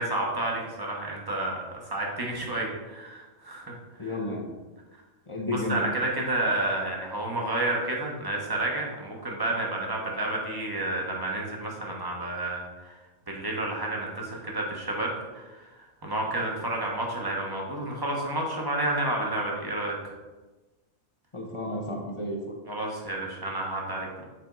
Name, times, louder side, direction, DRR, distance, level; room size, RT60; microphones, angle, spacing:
voice 1, 0.0-1.6 1.9-3.7 4.0-4.1 5.5-12.9 13.3-15.7 16.0-20.1 22.7-24.2, right 2 dB, 20° right, -2 dB, 1.2 m, -30 dB
voice 2, 4.0-4.5 5.3-5.9 21.3-22.6, left 1 dB, 25° left, 0 dB, 0.8 m, -32 dB
7.8 x 4.4 x 3.9 m, 1.2 s
omnidirectional pair, 1.4 m